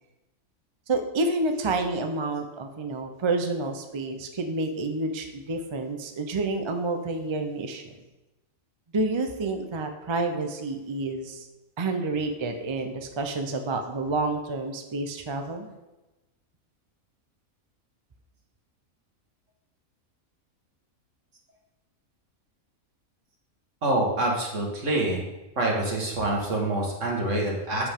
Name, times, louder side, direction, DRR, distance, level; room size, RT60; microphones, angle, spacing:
voice 1, 0.9-7.9 8.9-11.5 11.8-15.7, right 2 dB, 35° right, 5 dB, 0.4 m, -29 dB
voice 2, 23.8-25.2 25.6-27.9, right 2 dB, 60° right, -1 dB, 1.9 m, -26 dB
7.9 x 6.9 x 3.6 m, 1.0 s
omnidirectional pair, 1.5 m